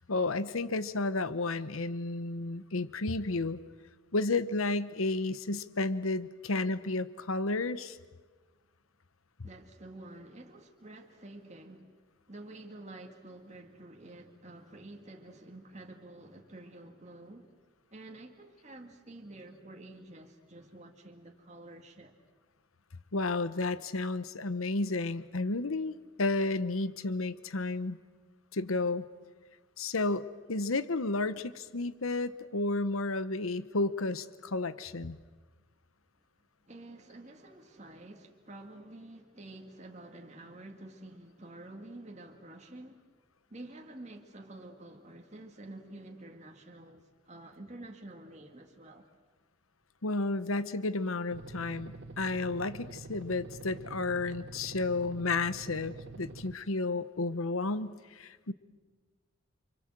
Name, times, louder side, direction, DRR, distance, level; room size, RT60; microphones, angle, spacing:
voice 1, 0.1-3.6 4.1-8.0 23.1-28.0 28.5-29.0 29.8-35.2 50.0-58.5, left 3 dB, 90° left, 1.1 m, -32 dB
voice 2, 9.4-11.9 12.3-17.5 17.9-22.1 36.7-43.0 43.5-49.1, right 1 dB, 35° right, 2.1 m, -49 dB
sound 1, 51.3-56.5, right 3 dB, 60° right, 0.9 m, -46 dB
29.5 x 26.0 x 7.6 m
head